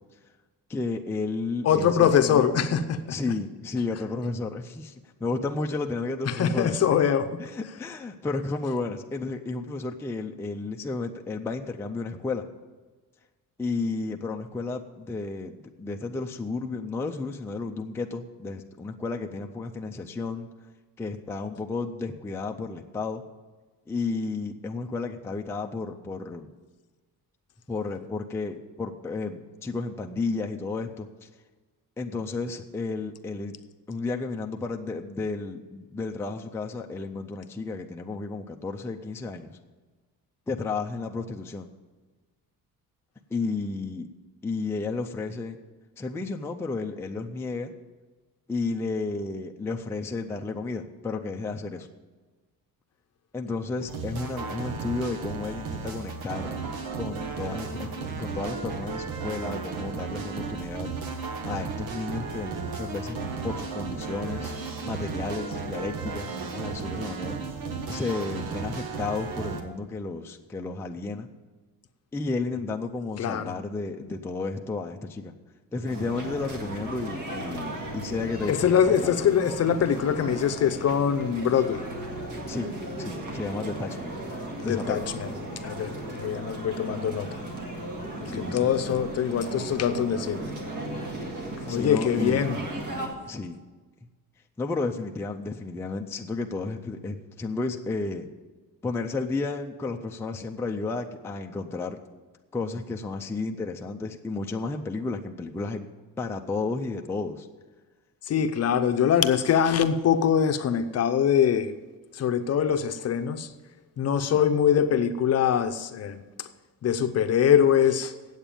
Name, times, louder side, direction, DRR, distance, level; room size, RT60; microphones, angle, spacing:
voice 1, 0.7-2.4 3.1-4.9 5.2-7.0 7.4-12.5 13.6-20.5 21.0-23.2 23.9-26.5 27.7-31.3 32.0-33.6 33.9-39.6 40.5-41.7 43.3-44.1 44.4-45.6 46.0-47.7 48.5-51.9 53.3-56.5 57.0-57.9 58.2-60.9 61.4-64.5 64.8-67.4 67.9-71.3 72.1-75.3 75.7-79.2 82.5-82.7 83.0-84.2 84.6-85.0 88.3-88.7 91.7-92.4 93.2-93.6 94.6-98.3 98.8-102.0 102.5-105.9 106.2-107.5 114.3-114.5, left 3 dB, 5° left, 0.4 m, -32 dB
voice 2, 1.6-3.0 6.3-7.3 73.2-73.5 78.5-81.8 84.6-85.3 85.6-87.4 88.2-90.5 91.7-92.6 108.3-111.7 112.1-113.5 114.0-116.2 116.8-118.1, left 8 dB, 45° left, 0.6 m, -23 dB
sound 1, 53.9-69.6, right 4 dB, 85° right, 1.5 m, -34 dB
sound 2, 75.9-93.1, right 1 dB, 60° right, 2.0 m, -36 dB
8.6 x 8.0 x 9.0 m
cardioid pair, 170°, 35 cm